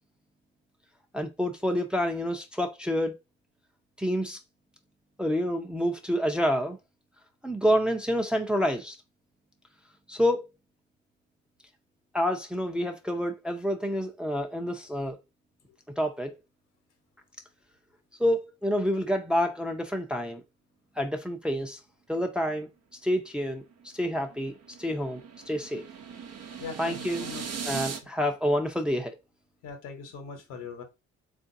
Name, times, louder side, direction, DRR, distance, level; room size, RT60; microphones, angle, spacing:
voice 1, 1.1-3.2 4.0-4.4 5.2-6.8 7.4-9.0 10.1-10.4 12.1-15.2 16.0-16.3 18.2-20.4 21.0-21.8 22.1-22.7 23.0-23.6 23.9-25.2 25.5-25.8 26.8-27.3 27.7-29.2, equal, 5° right, 0.6 m, -28 dB
sound 1, 23.7-28.0, right 6 dB, 50° right, 0.8 m, -39 dB
voice 2, 26.6-27.7 29.6-30.8, left 5 dB, 75° left, 1.1 m, -41 dB
3.7 x 2.6 x 2.7 m
hypercardioid pair, 60°, 31 cm